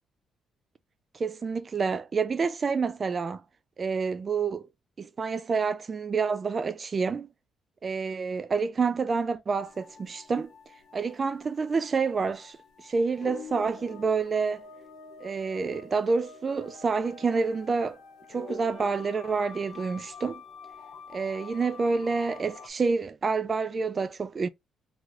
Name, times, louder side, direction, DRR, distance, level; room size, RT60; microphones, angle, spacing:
voice 1, 1.1-3.4 3.8-4.6 5.0-7.3 7.8-10.5 10.9-14.7 15.2-18.0 18.3-20.4 21.1-24.5, right 4 dB, 40° right, 0.3 m, -28 dB
sound 1, 9.6-22.7, left 5 dB, 80° left, 0.8 m, -47 dB
3.0 x 3.0 x 2.4 m
cardioid pair, 90°, 0 cm